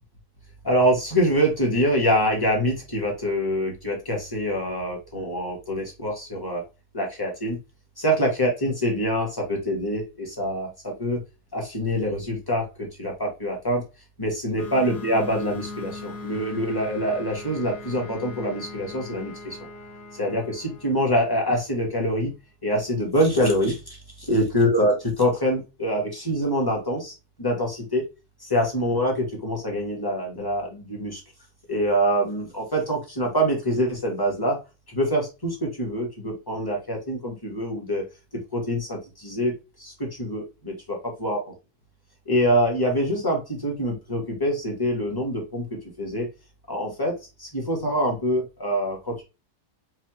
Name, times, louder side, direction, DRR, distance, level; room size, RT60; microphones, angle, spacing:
voice 1, 0.6-6.6 6.9-7.6 8.0-11.2 11.5-12.7 13.0-13.8 14.2-19.6 20.1-22.3 22.6-28.0 28.4-31.2 31.7-34.6 34.9-38.0 38.5-39.5 39.8-41.4 42.3-46.3 46.7-47.1 47.4-49.2, equal, 15° left, -2 dB, 1.2 m, -25 dB
sound 1, 14.6-21.9, left 2 dB, 85° left, 1.7 m, -40 dB
4.8 x 2.7 x 3.0 m, 0.28 s
omnidirectional pair, 1.8 m